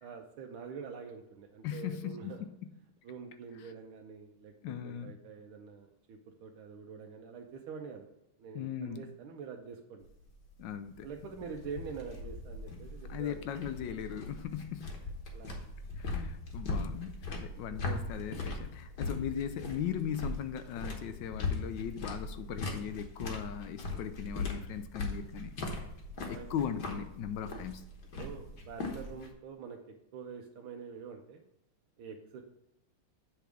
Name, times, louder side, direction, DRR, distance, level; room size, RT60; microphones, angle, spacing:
voice 1, 0.0-2.4 3.0-4.5 4.8-8.1 8.4-10.1 11.0-13.4 15.3-15.6 17.4-17.6 19.0-19.2 23.9-24.1 26.2-26.5 27.4-27.7 28.1-31.4 32.0-32.4, right 6 dB, 85° right, 1 dB, 1.6 m, -46 dB
voice 2, 1.6-2.5 4.6-5.1 8.5-9.1 10.6-11.1 13.1-14.9 16.0-25.5 26.3-27.8, left 9 dB, 75° left, 10 dB, 1.1 m, -38 dB
sound 1, 10.0-29.3, left 2 dB, 55° left, 1.6 m, -40 dB
8.1 x 3.5 x 6.2 m, 0.85 s
omnidirectional pair, 2.3 m